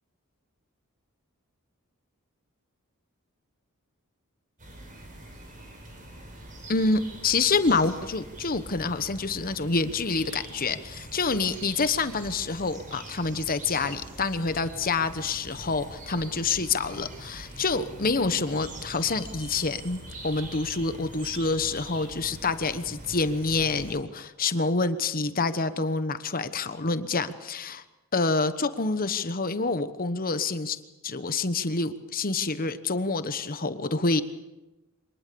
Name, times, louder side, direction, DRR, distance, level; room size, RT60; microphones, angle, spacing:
sound 1, 4.6-23.9, right 1 dB, 35° right, 5.4 m, -43 dB
voice 1, 6.7-27.8 28.1-34.2, left 3 dB, 40° left, 12 dB, 1.1 m, -27 dB
24.5 x 19.5 x 6.9 m, 1.1 s
head